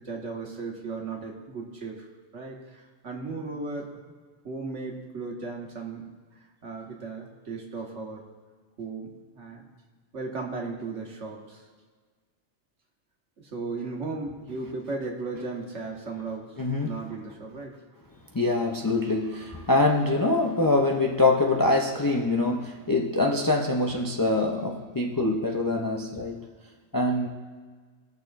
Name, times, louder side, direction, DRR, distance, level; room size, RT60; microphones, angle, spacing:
voice 1, 0.0-2.1 2.3-4.1 4.4-6.1 6.3-8.2 8.8-9.6 10.1-11.7 13.4-17.8, right 3 dB, 75° right, 0 dB, 1.7 m, -36 dB
voice 2, 16.6-17.0 18.3-26.5 26.9-27.3, left 2 dB, 30° left, 1 dB, 0.4 m, -24 dB
19.5 x 6.5 x 2.5 m, 1.5 s
omnidirectional pair, 1.2 m